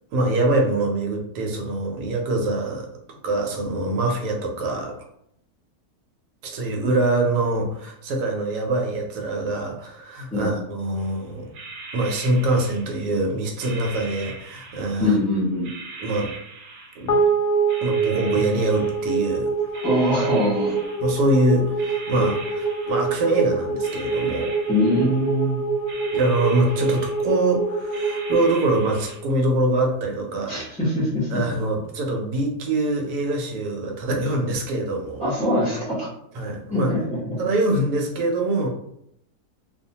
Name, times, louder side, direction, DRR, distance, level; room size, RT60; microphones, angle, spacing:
voice 1, 0.1-5.0 6.4-11.5 11.9-15.2 16.0-16.3 17.0-17.2 17.8-19.5 21.0-24.5 26.1-30.6 31.3-35.2 36.3-36.9 37.4-38.7, right 2 dB, 90° right, 1 dB, 1.2 m, -24 dB
sound 1, 11.0-11.2 11.5-13.2 13.6-15.2 15.6-17.3 17.7-19.4 19.7-21.4 21.8-23.4 23.7-25.5 25.9-27.5 27.9-29.2, right 4 dB, 65° right, 1.0 m, -40 dB
voice 2, 15.0-15.7 19.8-20.8 24.7-25.6 30.5-31.4 35.2-36.1 36.7-37.4, left 1 dB, 10° left, -12 dB, 0.4 m, -23 dB
sound 2, 17.1-29.6, right 4 dB, 70° left, 1.0 m, -25 dB
2.7 x 2.1 x 2.8 m, 0.74 s
omnidirectional pair, 1.7 m